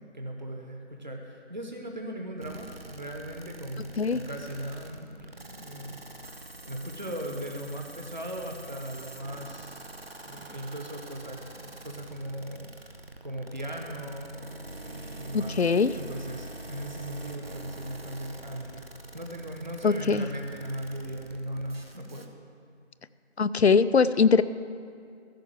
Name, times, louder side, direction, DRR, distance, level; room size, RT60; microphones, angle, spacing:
voice 1, 0.0-6.0 6.3-9.9 10.2-13.0 13.2-18.8 19.1-22.3, right 1 dB, 45° right, 1 dB, 1.1 m, -38 dB
sound 1, 2.4-22.3, right 2 dB, 60° right, 1.0 m, -45 dB
voice 2, 15.3-15.9 19.8-20.2 23.4-24.4, left 5 dB, 75° left, 15 dB, 0.5 m, -21 dB
14.5 x 5.7 x 7.2 m, 2.3 s
figure-of-eight pair, 175°, 33 cm